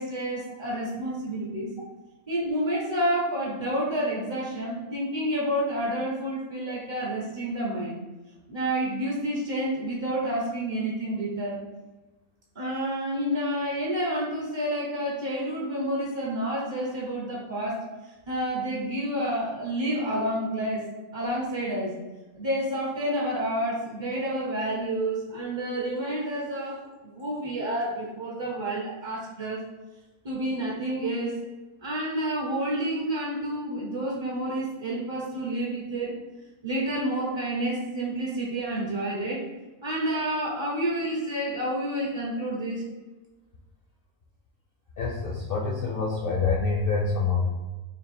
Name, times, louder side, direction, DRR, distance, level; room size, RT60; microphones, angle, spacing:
voice 1, 0.0-1.7 2.3-8.0 8.5-11.6 12.5-20.9 21.1-21.9 22.4-29.6 30.2-31.4 31.8-36.2 36.6-39.5 39.8-42.8, right 1 dB, 35° right, -5 dB, 0.4 m, -29 dB
voice 2, 45.0-47.4, left 4 dB, 65° left, -3 dB, 0.5 m, -26 dB
3.5 x 2.4 x 4.1 m, 1.2 s
omnidirectional pair, 1.5 m